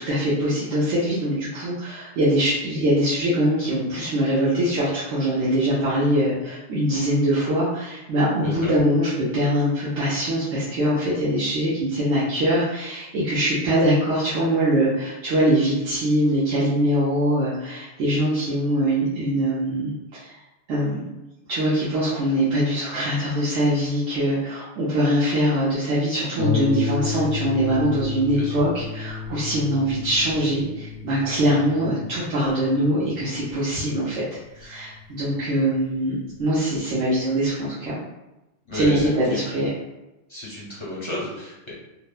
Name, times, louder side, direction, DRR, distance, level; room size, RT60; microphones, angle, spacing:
voice 1, 0.0-20.4 20.7-21.0 21.5-34.2 34.5-38.0 38.7-39.7, equal, 75° right, -9 dB, 1.0 m, -23 dB
Harp, 26.4-35.6 36.4-36.5 37.0-37.1, left 5 dB, 25° right, 0.4 m, -32 dB
voice 2, 38.7-39.6 40.3-41.7, left 1 dB, 35° left, -7 dB, 0.5 m, -33 dB
2.9 x 2.0 x 2.3 m, 0.97 s
omnidirectional pair, 1.2 m